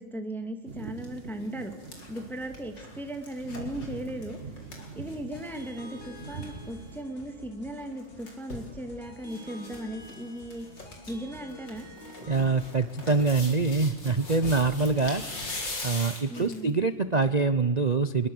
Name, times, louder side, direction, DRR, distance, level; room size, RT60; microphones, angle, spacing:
voice 1, 0.0-1.7 2.1-4.4 5.0-10.7 11.1-11.9 16.3-16.7, right 1 dB, ahead, 6 dB, 2.1 m, -37 dB
sound 1, 0.7-7.0, right 4 dB, 30° right, 1.5 m, -43 dB
sound 2, 0.8-1.1 1.5-5.7 6.0-6.1 6.3-6.5 7.8-8.7 9.3-9.8 10.1-10.2 10.5-11.1 11.5-16.7 17.2-17.3, left 2 dB, 60° left, 5.1 m, -40 dB
sound 3, 5.3-12.7, left 1 dB, 30° left, 3.8 m, -48 dB
voice 2, 12.3-15.2 15.8-18.3, right 4 dB, 75° right, 12 dB, 0.3 m, -25 dB
25.0 x 22.0 x 8.0 m, 1.2 s
omnidirectional pair, 2.2 m